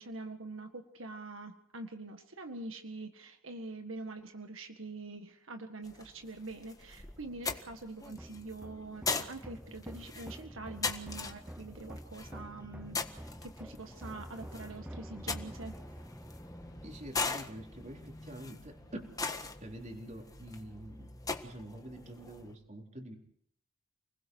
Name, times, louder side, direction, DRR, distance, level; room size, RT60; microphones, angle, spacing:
voice 1, 0.0-15.8, right 2 dB, 80° right, 5 dB, 1.8 m, -45 dB
sound 1, 5.8-22.5, left 4 dB, 20° left, 1.6 m, -41 dB
sound 2, 8.1-18.4, equal, 5° right, 0.8 m, -48 dB
voice 2, 16.8-19.1 19.6-23.2, right 1 dB, 40° right, 2 dB, 3.9 m, -46 dB
30.0 x 21.0 x 4.8 m, 0.65 s
head